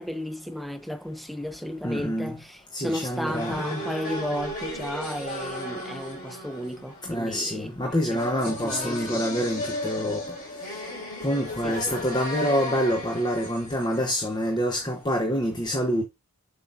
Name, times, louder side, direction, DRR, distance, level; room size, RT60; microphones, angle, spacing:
voice 1, 0.0-8.2 8.6-9.2 11.6-12.0, equal, ahead, 0.5 m, -34 dB
voice 2, 1.8-2.4 2.7-3.6 7.0-10.2 11.2-16.0, equal, 20° left, 1.0 m, -26 dB
sound 1, 2.9-14.7, left 1 dB, 40° left, 3.5 m, -35 dB
7.5 x 5.7 x 2.6 m
head